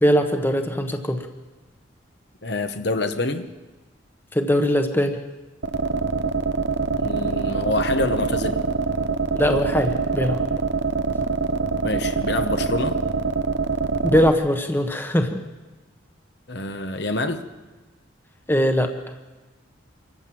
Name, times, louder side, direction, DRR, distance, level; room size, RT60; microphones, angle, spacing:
voice 1, 0.0-1.2 4.3-5.2 9.3-10.4 14.0-15.4 18.5-18.9, equal, 10° left, 6 dB, 1.2 m, -21 dB
voice 2, 2.4-3.5 7.0-8.6 11.8-13.0 16.5-17.4, left 2 dB, 55° left, 7 dB, 1.2 m, -26 dB
sound 1, 5.6-14.3, right 4 dB, 60° right, 0.7 m, -24 dB
26.0 x 14.5 x 7.7 m, 1.2 s
head